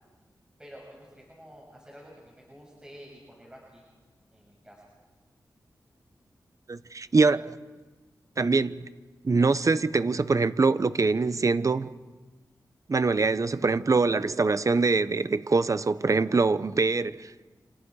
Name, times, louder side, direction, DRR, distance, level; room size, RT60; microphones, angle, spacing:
voice 1, 0.6-3.8 4.3-4.9, equal, 10° right, 6.8 m, -49 dB
voice 2, 6.7-7.5 8.4-8.8 9.2-11.9 12.9-17.4, right 4 dB, 45° right, 0.9 m, -24 dB
29.0 x 27.5 x 4.9 m
cardioid pair, 60°, 8 cm